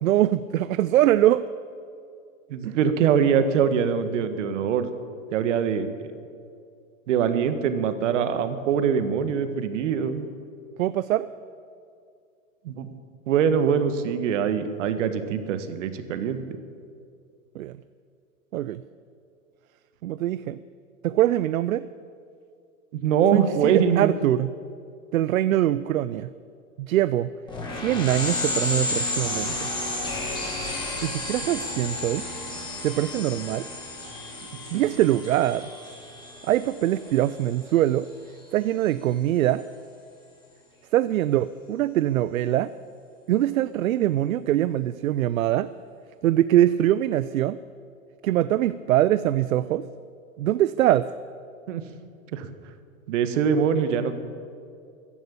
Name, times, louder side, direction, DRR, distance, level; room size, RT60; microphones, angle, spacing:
voice 1, 0.0-1.4 2.6-2.8 10.8-11.3 17.5-17.8 18.5-18.8 20.0-20.6 21.0-21.9 23.3-24.5 25.1-26.3 26.8-27.3 27.7-29.7 31.0-32.2 32.8-33.7 34.7-35.7 36.4-38.1 38.5-39.6 40.9-42.7 43.3-45.7 46.2-47.6 48.2-49.9 50.4-51.1, right 13 dB, 75° right, 16 dB, 0.6 m, -23 dB
voice 2, 2.5-4.9 5.3-5.9 7.1-10.3 12.6-12.9 13.3-16.4 22.9-24.1 34.7-34.8 51.7-51.8 52.3-52.5 53.1-54.2, right 7 dB, 60° right, 10 dB, 1.6 m, -23 dB
sound 1, 27.5-37.6, left 2 dB, 10° left, 3.6 m, -32 dB
14.0 x 11.0 x 8.5 m, 2.3 s
hypercardioid pair, 130°, 41 cm